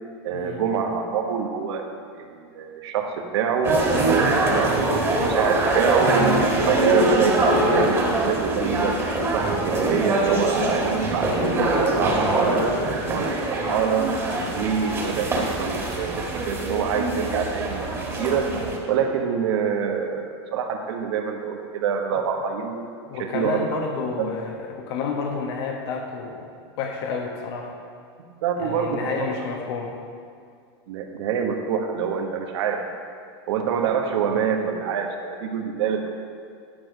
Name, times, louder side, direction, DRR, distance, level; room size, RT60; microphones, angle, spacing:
voice 1, 0.2-1.9 2.2-3.8 4.0-9.0 9.3-14.1 14.5-17.8 18.2-18.5 18.9-22.8 23.2-23.6 24.2-24.3 28.4-29.1 30.9-32.8 33.5-36.1, right 7 dB, 75° right, 3 dB, 1.2 m, -26 dB
sound 1, 3.6-18.8, right 2 dB, 20° right, 1.7 m, -23 dB
voice 2, 23.1-26.4 26.8-27.7 28.6-29.9 34.2-34.4, left 5 dB, 65° left, 2 dB, 1.2 m, -30 dB
10.0 x 6.2 x 5.1 m, 2.3 s
supercardioid pair, 140°, 14 cm